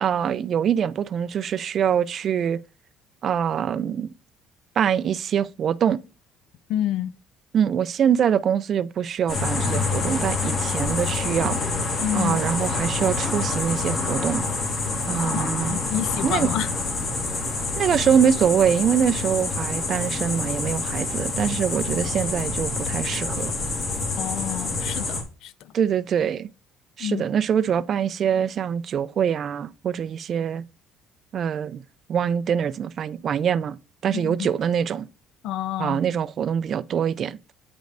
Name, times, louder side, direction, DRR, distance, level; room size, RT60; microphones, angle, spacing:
voice 1, 0.0-2.6 3.2-4.1 4.8-6.0 7.5-11.6 12.1-14.4 15.1-15.8 16.2-16.5 17.8-23.5 25.7-26.5 27.0-30.6 31.3-31.8 32.1-33.8 34.0-35.1 35.8-37.4, right 8 dB, 45° right, 0.3 m, -24 dB
voice 2, 6.7-7.1 12.0-12.4 15.3-16.7 21.9-22.1 24.2-25.5 27.0-27.2 34.1-34.5 35.4-36.0, left 11 dB, 70° left, 0.4 m, -29 dB
sound 1, 9.3-25.2, left 3 dB, 45° left, 1.9 m, -27 dB
8.9 x 5.2 x 2.5 m
cardioid pair, 125°, 0 cm